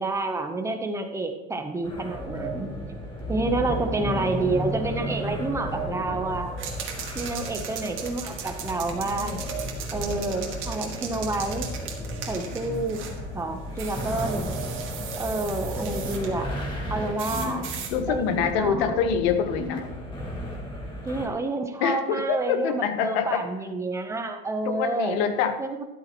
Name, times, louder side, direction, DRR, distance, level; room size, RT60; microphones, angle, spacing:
voice 1, 0.0-2.7 3.3-6.6 7.1-9.5 9.9-11.7 12.3-13.0 13.3-14.5 15.2-16.5 16.9-17.6 18.1-18.9 21.0-25.2 25.6-25.8, right 2 dB, 10° right, 6 dB, 0.9 m, -29 dB
sound 1, 1.8-21.3, equal, 15° left, 2.2 m, -33 dB
sound 2, 6.6-13.2 13.8-16.3 17.2-17.9, right 7 dB, 40° right, 1.9 m, -38 dB
voice 2, 17.9-19.8 21.8-23.4 24.7-25.5, left 7 dB, 90° left, 8 dB, 1.3 m, -25 dB
12.5 x 12.0 x 3.1 m, 1.0 s
cardioid pair, 165°, 30 cm